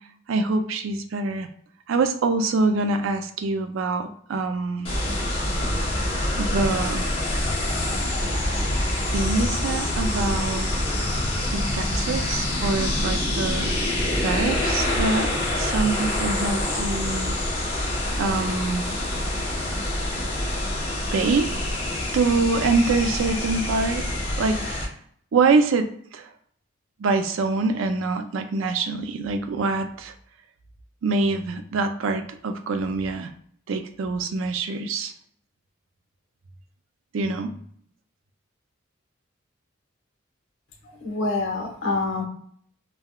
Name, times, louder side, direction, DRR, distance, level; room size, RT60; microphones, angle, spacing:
voice 1, 0.3-1.5 1.9-4.9 6.4-7.1 9.1-10.9 11.5-13.8 14.2-17.3 18.2-18.8 21.1-21.5 22.1-24.1 24.4-24.9 25.3-26.3 27.0-30.1 31.0-33.3 33.7-35.1 37.1-37.5, right 3 dB, 70° right, 7 dB, 0.4 m, -25 dB
sound 1, 4.8-24.8, left 1 dB, 25° left, 0.8 m, -26 dB
voice 2, 40.8-42.2, left 3 dB, 75° left, -1 dB, 1.0 m, -26 dB
3.4 x 2.2 x 2.3 m, 0.62 s
head